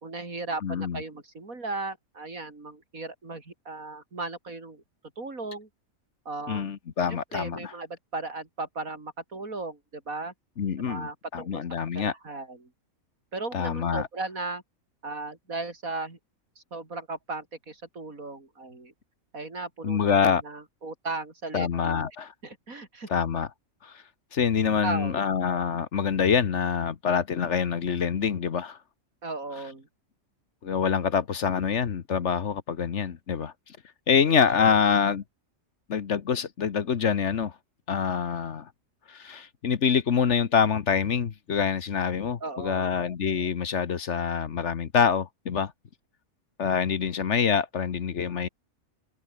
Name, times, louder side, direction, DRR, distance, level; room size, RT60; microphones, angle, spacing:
voice 1, 0.0-4.8 5.2-5.7 6.3-6.7 7.1-10.3 10.8-11.6 11.9-12.7 13.3-14.6 15.0-16.2 16.6-18.9 19.3-22.1 22.4-23.1 24.8-25.2 29.2-29.9 34.5-34.8 42.4-43.0, right 3 dB, 75° right, 4.6 m, -36 dB
voice 2, 0.6-1.0 6.5-7.7 10.6-12.1 13.5-14.1 19.8-20.4 21.5-22.3 23.1-23.5 23.8-24.0 24.3-28.8 30.6-33.5 34.1-35.2 35.9-37.5 37.9-38.7 39.1-45.7 46.6-48.5, left 7 dB, 55° left, 1.3 m, -26 dB
open air
omnidirectional pair, 1.5 m